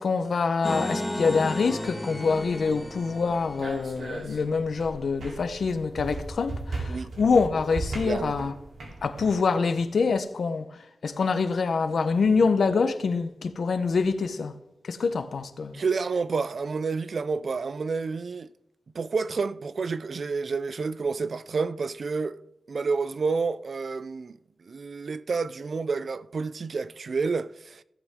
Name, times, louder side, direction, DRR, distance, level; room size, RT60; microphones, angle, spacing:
voice 1, 0.0-8.5 9.0-10.7 11.0-14.5 14.8-15.8, left 4 dB, 70° left, 0.9 m, -25 dB
sound 1, 0.6-3.9, left 1 dB, 10° left, 1.4 m, -33 dB
sound 2, 2.2-9.3, right 2 dB, 90° right, 3.5 m, -38 dB
voice 2, 8.0-8.4 15.7-18.5 18.9-22.4 22.7-24.4 24.7-27.8, right 4 dB, 60° right, 0.5 m, -29 dB
16.5 x 8.1 x 3.7 m
wide cardioid pair, 85°, 0 cm